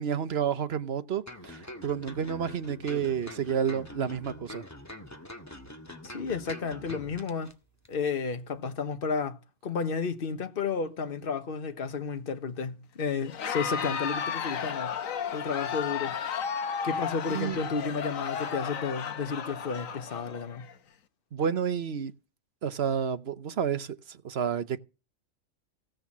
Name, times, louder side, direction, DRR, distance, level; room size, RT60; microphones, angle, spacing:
voice 1, 0.0-4.6 17.3-17.6 21.3-22.1 22.6-24.8, right 7 dB, 50° right, 1.1 m, -30 dB
sound 1, 1.3-7.5 7.8-8.0, left 1 dB, 10° left, 1.8 m, -44 dB
voice 2, 6.0-7.5 7.9-15.0 15.3-16.1 16.8-20.7, left 5 dB, 45° left, 1.4 m, -32 dB
Crowd, 13.2-20.7, left 7 dB, 80° left, 1.4 m, -33 dB
16.5 x 6.4 x 7.3 m
omnidirectional pair, 1.4 m